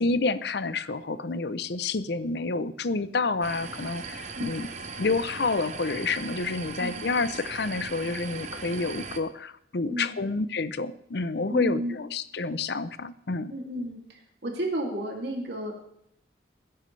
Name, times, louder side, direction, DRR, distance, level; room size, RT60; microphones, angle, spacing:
voice 1, 0.0-4.7 5.0-13.5, left 3 dB, 60° left, 14 dB, 0.6 m, -29 dB
sound 1, 3.4-9.2, right 4 dB, 35° right, 1.0 m, -39 dB
voice 2, 11.5-11.9 13.5-14.0 14.4-15.7, equal, 60° right, -1 dB, 2.7 m, -31 dB
20.0 x 10.5 x 3.3 m, 0.74 s
head